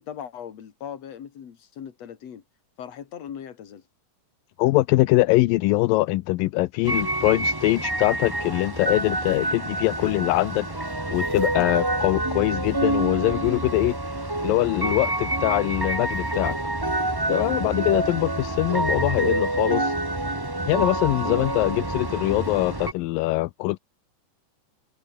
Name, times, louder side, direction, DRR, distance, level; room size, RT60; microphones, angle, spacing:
voice 1, 0.0-2.4 2.8-3.8 21.1-21.5, left 8 dB, 50° left, 3.2 m, -39 dB
voice 2, 4.6-10.7 11.1-14.0 14.4-16.6 17.3-19.9 20.7-23.8, left 19 dB, 90° left, 2.4 m, -23 dB
sound 1, 6.8-22.9, right 2 dB, 20° right, 0.6 m, -27 dB
omnidirectional pair, 4.0 m